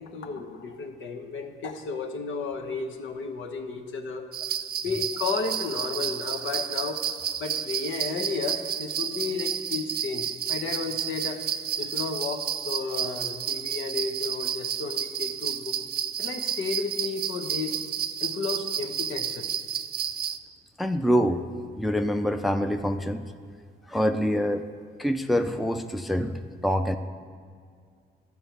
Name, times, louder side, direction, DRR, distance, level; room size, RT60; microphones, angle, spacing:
voice 1, 0.0-4.3 4.8-7.1 7.4-11.4 11.8-15.7 16.2-17.8 18.2-19.5, left 4 dB, 75° left, 4 dB, 1.1 m, -33 dB
sound 1, 4.3-20.4, right 8 dB, 50° right, 0.5 m, -31 dB
voice 2, 20.8-21.5 21.8-23.3 23.9-24.7 25.0-27.0, equal, ahead, 7 dB, 0.5 m, -25 dB
12.0 x 4.8 x 8.0 m, 2.1 s
cardioid pair, 90°, 20 cm